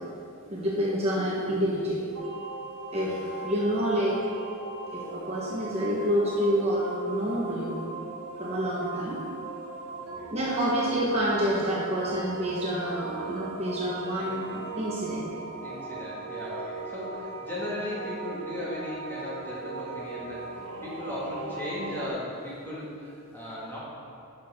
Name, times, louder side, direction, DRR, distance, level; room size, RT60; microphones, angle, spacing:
voice 1, 0.5-2.0 2.9-4.2 4.9-7.8 8.4-9.2 10.3-15.2, equal, 30° right, -5 dB, 1.1 m, -28 dB
sound 1, 2.1-22.1, right 3 dB, 90° right, 1.0 m, -39 dB
voice 2, 10.0-10.3 14.2-14.6 15.6-23.8, left 1 dB, 10° left, -8 dB, 1.9 m, -37 dB
11.5 x 6.2 x 3.6 m, 2.6 s
head